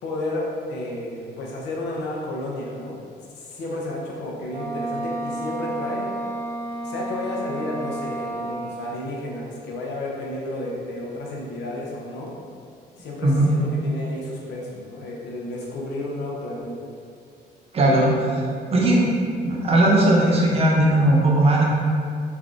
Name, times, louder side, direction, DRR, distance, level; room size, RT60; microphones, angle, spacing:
voice 1, 0.0-3.0 3.4-6.1 6.8-12.4 13.0-16.8, left 1 dB, 85° left, -2 dB, 0.6 m, -32 dB
Wind instrument woodwind instrument, 4.5-9.0, right 2 dB, 5° right, 1.0 m, -31 dB
voice 2, 17.7-18.4 18.7-19.0 19.4-21.6, right 1 dB, 35° right, -3 dB, 0.5 m, -18 dB
3.3 x 2.4 x 2.5 m, 2.3 s
cardioid pair, 140°, 18 cm